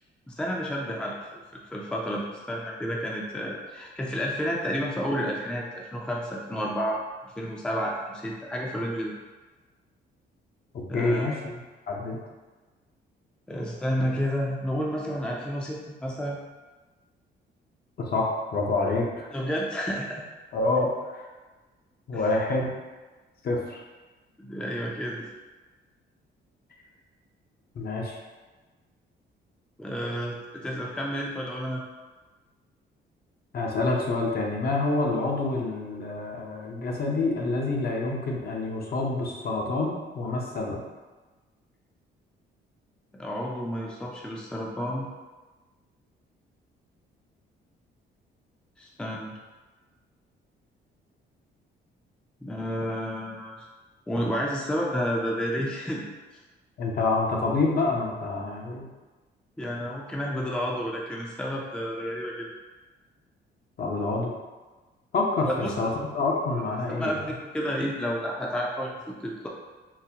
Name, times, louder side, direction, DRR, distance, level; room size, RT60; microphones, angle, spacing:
voice 1, 0.3-7.0 7.2-9.1 10.9-11.3 13.5-16.4 19.3-20.2 22.1-22.2 24.4-25.3 29.8-31.8 43.1-45.1 48.8-49.4 52.4-53.5 54.1-56.0 59.6-62.5 65.4-65.7 66.9-69.5, equal, 5° left, -2 dB, 0.4 m, -31 dB
voice 2, 10.9-11.5 11.9-12.2 18.1-19.3 20.5-21.2 22.1-22.7 23.4-23.8 27.8-28.2 33.5-40.8 56.8-58.9 63.8-64.3 65.1-67.3, left 3 dB, 50° left, -1 dB, 0.7 m, -27 dB
3.9 x 2.1 x 2.7 m, 1.3 s
cardioid pair, 90°, 20 cm